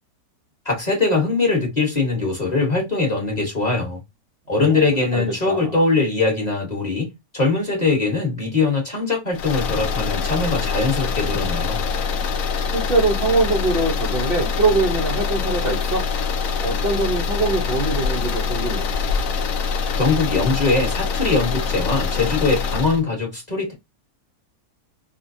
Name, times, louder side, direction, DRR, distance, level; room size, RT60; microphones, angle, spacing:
voice 1, 0.6-4.0 4.5-11.8 20.0-23.7, left 3 dB, 30° left, 1.1 m, -21 dB
voice 2, 4.5-4.8 5.1-5.7 12.7-16.0 16.6-18.9, right 3 dB, 55° right, 0.6 m, -23 dB
sound 1, 9.3-23.0, left 5 dB, 65° left, 0.9 m, -24 dB
4.6 x 2.2 x 2.6 m
omnidirectional pair, 1.8 m